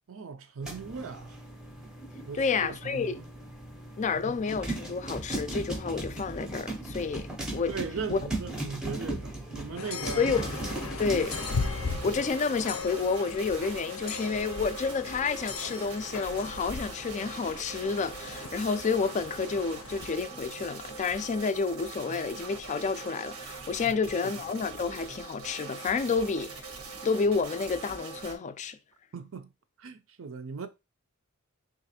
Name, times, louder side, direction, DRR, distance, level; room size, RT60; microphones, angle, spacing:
voice 1, 0.1-1.4 2.2-3.2 4.1-4.3 7.7-10.3 22.1-22.2 23.8-24.3 29.1-29.5 29.8-30.7, right 5 dB, 65° right, 0.5 m, -39 dB
sound 1, 0.6-12.3, right 1 dB, 5° right, 0.6 m, -38 dB
voice 2, 2.4-3.1 4.0-7.8 8.1-8.2 10.2-10.6 11.0-11.3 12.0-26.7 27.0-28.8, left 5 dB, 35° left, 0.3 m, -30 dB
sound 2, 9.8-20.2, left 5 dB, 80° left, 0.6 m, -38 dB
sound 3, 10.3-28.4, right 4 dB, 85° right, 1.0 m, -43 dB
3.3 x 2.5 x 4.1 m
head